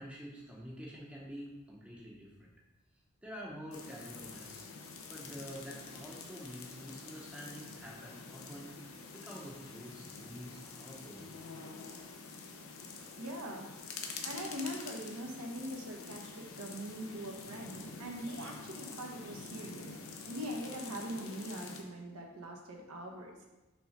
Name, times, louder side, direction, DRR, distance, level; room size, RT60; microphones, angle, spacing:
voice 1, 0.0-2.5 3.2-4.6 5.1-8.8 9.1-11.3, equal, 5° right, -3 dB, 0.8 m, -47 dB
sound 1, 3.7-21.8, left 4 dB, 70° left, 0.8 m, -47 dB
voice 2, 13.2-13.7 14.2-20.0 20.3-23.5, equal, 90° right, 1 dB, 1.1 m, -42 dB
5.7 x 3.6 x 5.1 m, 1.1 s
head